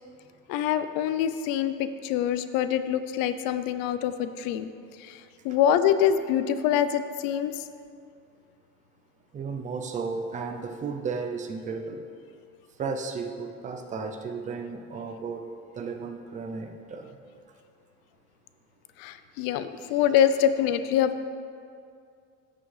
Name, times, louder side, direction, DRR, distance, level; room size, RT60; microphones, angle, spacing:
voice 1, 0.5-4.7 5.0-7.6 19.0-21.3, left 9 dB, 65° left, 11 dB, 0.6 m, -25 dB
voice 2, 9.3-12.0 12.8-15.5 15.8-17.1, right 4 dB, 20° right, 5 dB, 0.4 m, -34 dB
14.0 x 6.2 x 3.2 m, 2.3 s
cardioid pair, 170°, 37 cm